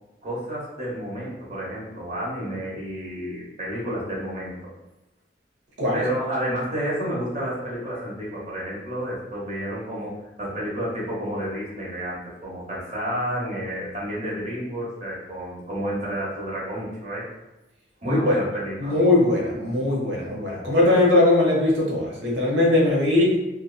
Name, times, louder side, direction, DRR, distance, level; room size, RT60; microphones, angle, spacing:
voice 1, 0.2-4.7 5.9-17.3 18.0-19.0, equal, 40° right, -6 dB, 1.0 m, -30 dB
voice 2, 18.0-18.4 18.8-23.4, left 2 dB, 90° right, -2 dB, 0.9 m, -20 dB
2.7 x 2.3 x 2.2 m, 1.0 s
head